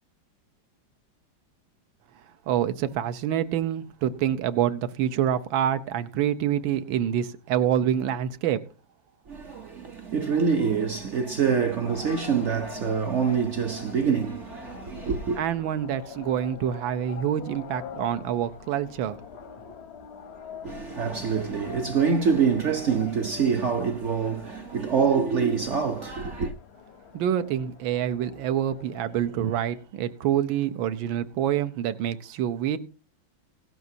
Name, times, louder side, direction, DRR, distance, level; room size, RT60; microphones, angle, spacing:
voice 1, 2.5-8.6 15.4-19.2 27.1-32.8, right 10 dB, 80° right, 1.6 m, -26 dB
voice 2, 9.3-15.4 20.6-26.5, right 6 dB, 60° right, 0.7 m, -25 dB
sound 1, 11.8-29.8, left 7 dB, 60° left, 0.7 m, -44 dB
17.0 x 12.0 x 2.7 m
omnidirectional pair, 2.1 m